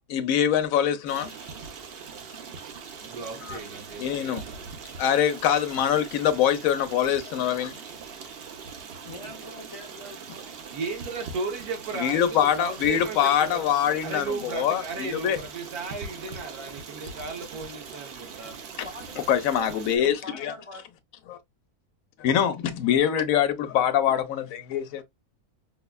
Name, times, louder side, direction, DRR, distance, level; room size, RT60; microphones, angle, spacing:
voice 1, 0.1-1.3 3.4-3.6 4.0-4.4 5.0-7.8 12.0-15.4 19.3-20.5 21.3-21.4 22.2-25.0, left 9 dB, 70° left, 1.0 m, -24 dB
Stream, 1.1-20.0, right 5 dB, 55° right, 0.7 m, -41 dB
voice 2, 3.0-4.7 10.7-13.6 14.0-18.6, right 4 dB, 85° right, 1.4 m, -35 dB
voice 3, 9.0-10.6 18.8-20.8, left 1 dB, 45° left, 0.4 m, -44 dB
5.4 x 2.2 x 2.2 m
omnidirectional pair, 1.6 m